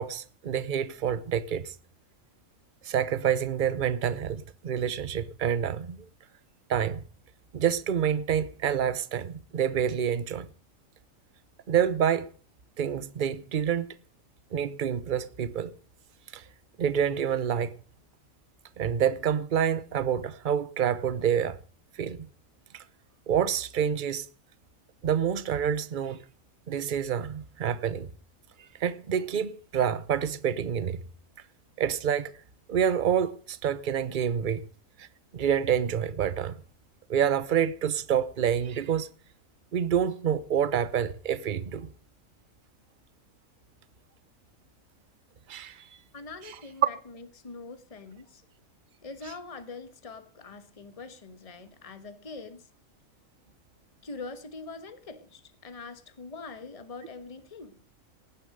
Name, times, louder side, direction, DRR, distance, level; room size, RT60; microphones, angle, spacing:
voice 1, 0.0-1.7 2.8-6.1 6.7-7.0 7.5-10.5 11.7-12.3 12.8-14.0 14.5-15.7 16.3-16.4 16.8-17.7 18.8-21.6 22.0-22.3 22.7-22.8 23.3-24.3 25.0-26.2 26.7-28.1 28.8-31.0 31.8-32.3 32.7-34.6 35.0-35.1 35.3-36.6 37.1-39.1 39.7-41.9 45.5-45.8, right 8 dB, 45° right, 0.8 m, -27 dB
voice 2, 46.1-48.4 49.0-52.7 54.0-57.8, left 4 dB, 25° left, 1.4 m, -43 dB
18.5 x 7.3 x 6.6 m
omnidirectional pair, 1.4 m